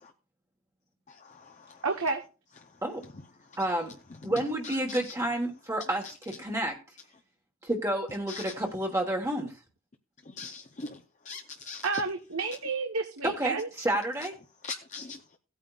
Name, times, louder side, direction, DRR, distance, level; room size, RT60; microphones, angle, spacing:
voice 1, 1.8-2.2 11.8-13.7, right 4 dB, 75° right, 1.1 m, -30 dB
voice 2, 3.6-3.9 4.2-6.8 7.6-9.5 13.2-14.3, right 1 dB, 15° right, 1.3 m, -30 dB
voice 3, 10.4-11.0 11.3-11.8 14.6-15.2, left 4 dB, 35° left, 0.7 m, -40 dB
17.0 x 9.0 x 2.4 m
head